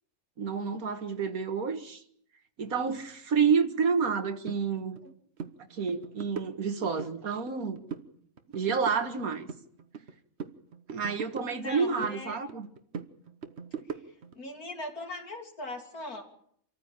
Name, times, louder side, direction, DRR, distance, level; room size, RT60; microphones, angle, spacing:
voice 1, 0.4-2.0 2.6-5.0 5.7-7.8 8.5-9.5 10.9-12.7, right 6 dB, 80° right, 2.1 m, -29 dB
sound 1, 4.5-4.6 5.0-5.1 5.4-5.6 5.9-7.1 7.5-8.1 8.4-10.1 10.4-12.2 12.5-14.3, right 6 dB, 50° right, 1.4 m, -41 dB
voice 2, 11.5-12.4 13.9-14.0 14.4-16.2, left 1 dB, 85° left, 3.8 m, -40 dB
26.5 x 14.5 x 8.9 m
omnidirectional pair, 1.5 m